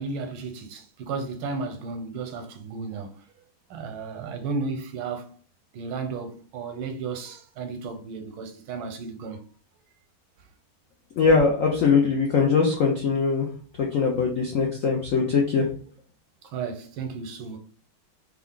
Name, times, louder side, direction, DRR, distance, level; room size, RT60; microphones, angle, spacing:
voice 1, 0.0-3.2 3.7-5.4 5.7-9.4 16.4-17.6, right 4 dB, 85° right, 1.5 m, -34 dB
voice 2, 11.2-13.5 13.8-15.7, left 5 dB, 85° left, 0.7 m, -21 dB
3.4 x 2.4 x 3.7 m
omnidirectional pair, 2.2 m